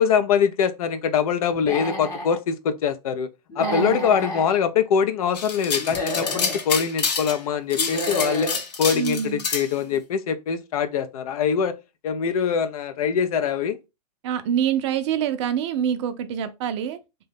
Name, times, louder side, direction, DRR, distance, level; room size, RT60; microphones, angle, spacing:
voice 1, 0.0-3.3 3.6-8.5 8.8-11.7 12.0-13.8, left 7 dB, 60° left, 0.5 m, -23 dB
Human voice / Animal, 1.5-2.4 3.5-4.5 5.8-6.6 7.7-8.6, left 2 dB, 15° left, 0.8 m, -30 dB
voice 2, 3.6-4.1 8.9-9.4 14.2-17.0, right 9 dB, 45° right, 0.4 m, -26 dB
sound 1, 5.3-7.4 7.7-9.7, left 5 dB, 80° left, 0.8 m, -27 dB
2.7 x 2.2 x 3.4 m
hypercardioid pair, 125°, 21 cm